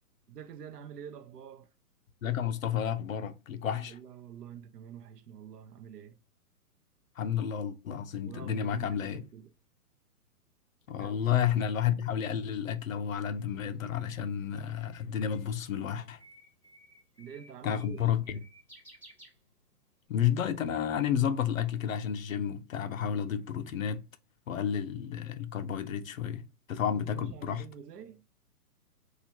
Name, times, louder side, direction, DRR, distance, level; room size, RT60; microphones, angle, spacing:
voice 1, 0.3-1.7 3.7-6.2 8.2-9.5 11.0-11.2 17.2-18.4 26.9-28.2, right 8 dB, 90° right, 0.7 m, -47 dB
voice 2, 2.2-4.0 7.2-9.2 10.9-16.2 17.6-18.4 20.1-24.0 24.5-27.6, left 8 dB, 60° left, 0.6 m, -31 dB
Bird, 13.7-20.0, right 1 dB, 5° right, 1.2 m, -58 dB
2.8 x 2.4 x 4.2 m
hypercardioid pair, 175°, 46 cm